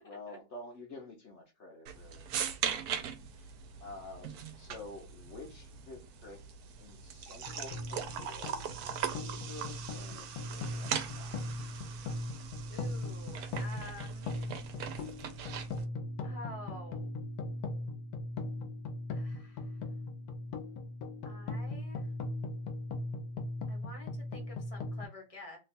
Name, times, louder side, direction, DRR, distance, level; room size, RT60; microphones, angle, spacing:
voice 1, 0.1-2.2 3.8-6.4 6.8-11.5 11.7-11.9, left 2 dB, 60° left, 0.9 m, -49 dB
sound 1, 1.9-15.9, right 8 dB, 80° right, 1.1 m, -40 dB
sound 2, 7.4-25.1, left 2 dB, 75° left, 1.1 m, -39 dB
voice 2, 12.7-14.4 16.2-17.1 19.1-19.8 21.2-22.1 23.7-25.6, left 2 dB, 30° left, 0.8 m, -49 dB
2.9 x 2.3 x 4.0 m
omnidirectional pair, 1.6 m